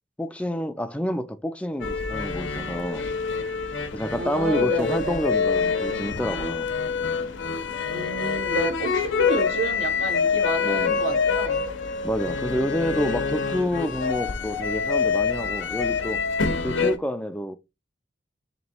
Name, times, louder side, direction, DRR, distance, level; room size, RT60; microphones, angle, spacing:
voice 1, 0.2-3.1 3.9-6.7 10.6-11.0 12.0-16.2 16.6-17.6, equal, 5° left, 0.4 m, -28 dB
sound 1, 1.8-17.0, left 5 dB, 90° left, 0.7 m, -26 dB
voice 2, 4.1-5.2 7.9-11.6, right 3 dB, 85° right, 0.9 m, -30 dB
3.5 x 3.0 x 4.3 m
head